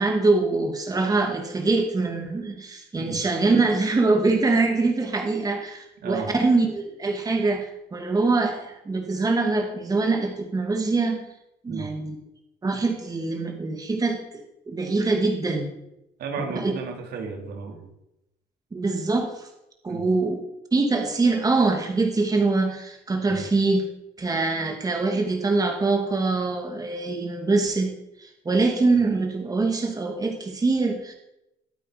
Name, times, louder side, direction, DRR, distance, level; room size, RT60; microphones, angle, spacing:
voice 1, 0.0-11.2 11.6-12.2 12.6-14.2 14.7-15.7 16.4-16.8 18.7-19.5 19.8-20.4 20.7-23.8 24.2-27.9 28.2-31.1, right 3 dB, 20° right, 3 dB, 2.3 m, -24 dB
voice 2, 16.2-17.9 19.9-20.1 23.3-23.4, right 5 dB, 70° right, 3 dB, 3.2 m, -33 dB
21.5 x 8.7 x 5.1 m, 0.88 s
cardioid pair, 110°, 17 cm